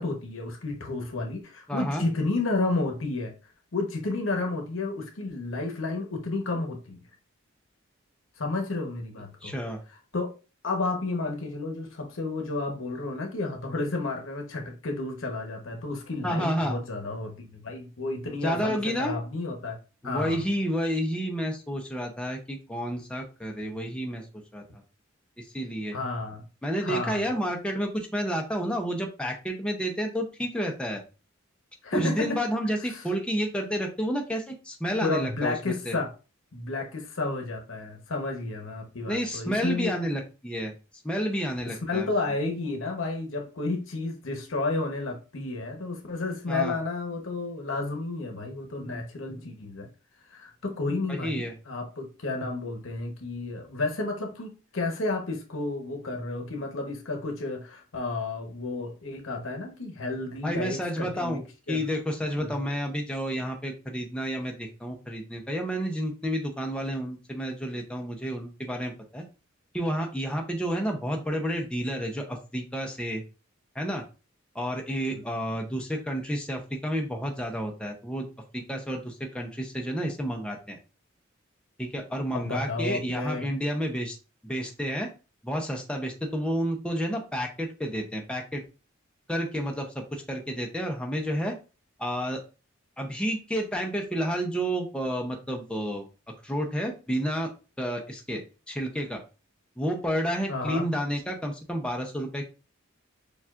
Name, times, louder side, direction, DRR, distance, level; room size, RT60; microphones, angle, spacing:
voice 1, 0.0-3.3 3.7-7.0 8.4-9.5 10.1-10.3 10.6-19.8 20.0-20.4 25.9-26.4 26.8-27.2 31.8-32.4 32.9-33.0 35.0-36.1 36.5-39.9 41.6-49.9 50.3-61.4 61.7-61.8 62.4-62.6 75.1-75.2 82.3-83.4 100.5-100.9, left 3 dB, 75° left, 1.0 m, -31 dB
voice 2, 1.7-2.0 9.4-9.8 16.2-16.8 18.4-19.1 20.0-24.3 24.5-24.6 25.4-26.0 26.6-31.0 31.9-35.5 35.9-36.0 39.0-40.7 41.0-42.1 46.5-46.7 51.1-51.5 60.4-61.4 61.7-69.2 69.7-73.2 73.7-74.0 74.5-78.3 78.5-80.8 81.8-84.2 84.4-85.1 85.4-88.6 89.3-91.5 92.0-92.4 93.0-96.1 96.4-97.5 97.8-98.4 98.7-99.2 99.8-102.5, equal, 5° left, 0.6 m, -30 dB
6.9 x 2.3 x 2.4 m
head